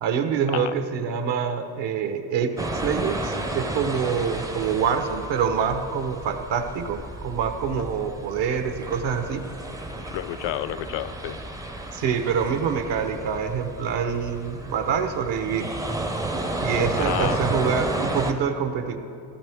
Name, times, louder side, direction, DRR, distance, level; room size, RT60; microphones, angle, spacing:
voice 1, 0.0-9.4 11.9-15.7 16.6-19.0, right 6 dB, 60° right, 7 dB, 1.1 m, -26 dB
sound 1, 2.6-18.3, right 1 dB, 5° right, 0.6 m, -32 dB
voice 2, 10.1-11.4 17.0-17.5, left 13 dB, 60° left, 15 dB, 0.6 m, -30 dB
16.0 x 13.0 x 3.5 m, 2.6 s
cardioid pair, 125°, 49 cm